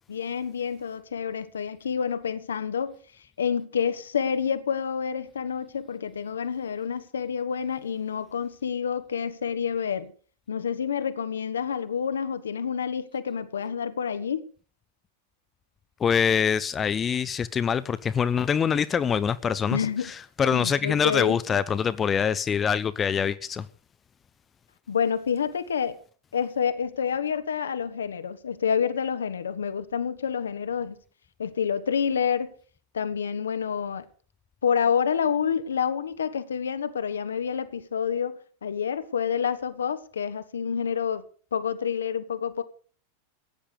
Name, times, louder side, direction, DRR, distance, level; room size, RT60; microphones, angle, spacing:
voice 1, 0.1-3.0 3.4-10.1 10.5-14.4 19.7-20.1 20.5-21.4 24.9-26.0 26.3-31.0 31.4-32.5 32.9-34.0 34.6-41.2 41.5-42.6, left 7 dB, 70° left, 1.4 m, -28 dB
voice 2, 16.0-19.8 20.4-23.7, left 7 dB, 20° left, 0.8 m, -24 dB
16.0 x 10.0 x 6.7 m
figure-of-eight pair, 90°, 0 cm